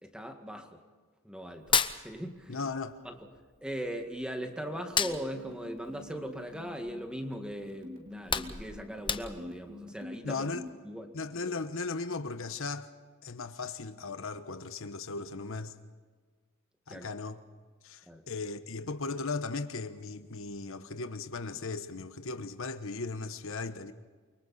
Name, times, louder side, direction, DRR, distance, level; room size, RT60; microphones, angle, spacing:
voice 1, 0.0-0.8 1.2-2.6 3.0-3.2 3.6-10.5 10.8-11.1 16.9-17.1 18.1-18.2, equal, 5° right, 1.9 m, -39 dB
Hands, 1.5-2.8 3.1-4.4 4.7-7.1 7.5-7.7 8.0-9.6, left 6 dB, 25° left, 0.9 m, -32 dB
voice 2, 2.5-3.0 10.2-10.6 11.1-12.9 13.2-15.7 16.9-17.4 17.8-23.9, left 3 dB, 65° left, 1.1 m, -37 dB
sound 1, 5.0-10.7, left 2 dB, 40° right, 3.8 m, -46 dB
29.0 x 24.5 x 4.3 m
head